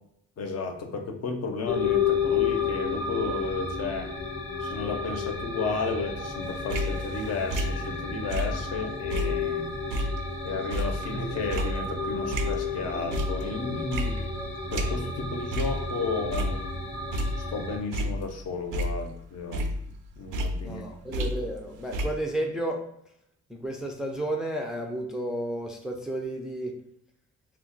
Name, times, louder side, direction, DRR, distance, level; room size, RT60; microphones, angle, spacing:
voice 1, 0.4-4.1 4.6-9.7 10.4-14.2 14.7-16.6 17.4-19.7 20.2-20.9, left 4 dB, 55° left, 4 dB, 0.6 m, -33 dB
sound 1, 1.7-17.8, left 5 dB, 20° left, 0.7 m, -32 dB
sound 2, 6.4-8.8 9.1-12.8 13.1-13.6 13.9-15.2 15.5-15.8 16.2-17.5 17.9-19.2 19.5-21.7 21.9-22.1, equal, 85° right, 0.5 m, -31 dB
voice 2, 20.6-22.9 23.5-26.8, right 1 dB, ahead, 2 dB, 0.3 m, -32 dB
2.2 x 2.2 x 3.8 m, 0.75 s
cardioid pair, 90°, 30 cm